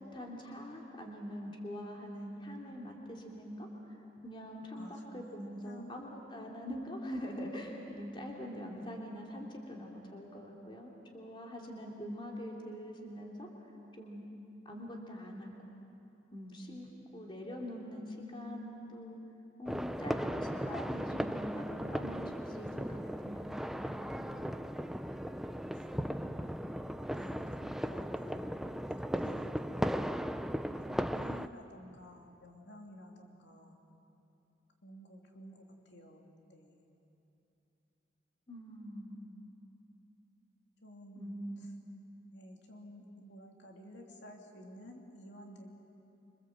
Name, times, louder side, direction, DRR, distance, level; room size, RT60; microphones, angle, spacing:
voice 1, 0.0-13.5 13.9-14.2 14.6-15.5 16.3-19.2 19.6-23.4 23.7-24.6 38.5-39.3 41.1-41.6, equal, 25° left, -1 dB, 2.9 m, -44 dB
voice 2, 4.8-6.0 27.1-28.8 29.2-29.9 30.9-33.8 34.8-36.2 36.5-36.8 40.8-41.4 42.3-45.7, equal, 70° left, 1 dB, 2.8 m, -52 dB
sound 1, 19.7-31.5, equal, ahead, 0.5 m, -37 dB
26.5 x 25.5 x 7.9 m, 2.9 s
head